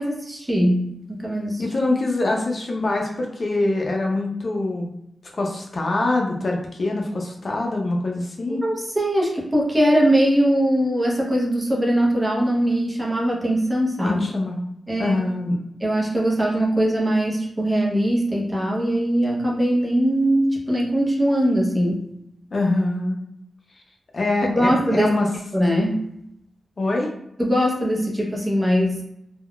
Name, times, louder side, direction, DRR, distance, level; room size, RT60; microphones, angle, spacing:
voice 1, 0.0-1.6 8.6-14.2 14.9-15.2 15.8-22.0 24.4-25.2 25.5-26.1 27.4-29.0, equal, 15° right, -3 dB, 0.7 m, -21 dB
voice 2, 1.6-4.9 5.3-8.6 14.0-14.6 15.0-15.6 22.5-23.2 24.1-25.3 26.8-27.1, left 2 dB, 50° left, 0 dB, 0.5 m, -24 dB
3.5 x 2.2 x 2.2 m, 0.78 s
wide cardioid pair, 110°, 0 cm